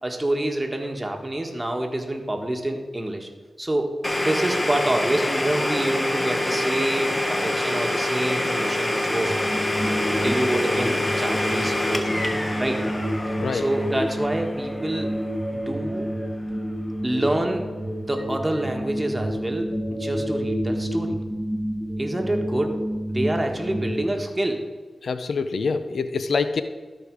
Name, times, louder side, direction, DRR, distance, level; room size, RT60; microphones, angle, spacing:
voice 1, 0.0-3.3 3.6-4.0 4.2-9.3 10.1-12.1 12.6-12.8 13.5-15.2 15.5-16.1 17.0-17.7 18.0-19.7 20.0-21.2 22.0-22.8 23.1-24.6, right 1 dB, 20° right, 2 dB, 1.7 m, -27 dB
Domestic sounds home sounds, 4.0-15.7, left 1 dB, 25° left, 1.2 m, -26 dB
sound 1, 9.2-24.0, equal, 5° right, 2.1 m, -29 dB
voice 2, 13.3-13.6 25.0-26.6, left 4 dB, 80° left, 11 dB, 0.5 m, -25 dB
13.0 x 5.0 x 4.8 m, 1.3 s
cardioid pair, 40°, 0 cm